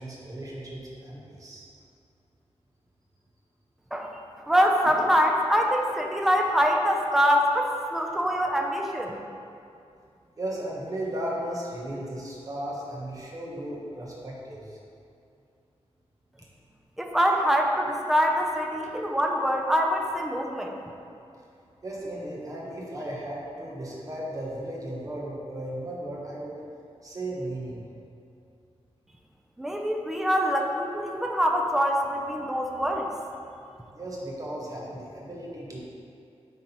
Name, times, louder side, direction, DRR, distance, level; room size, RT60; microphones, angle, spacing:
voice 1, 0.0-1.6 10.4-14.8 21.8-26.5 27.0-27.9 33.9-35.8, right 1 dB, 30° right, -4 dB, 1.3 m, -35 dB
voice 2, 4.5-9.2 17.0-20.8 29.6-33.1, equal, 5° right, 1 dB, 0.5 m, -24 dB
9.5 x 3.7 x 4.3 m, 2.5 s
wide cardioid pair, 175°, 11 cm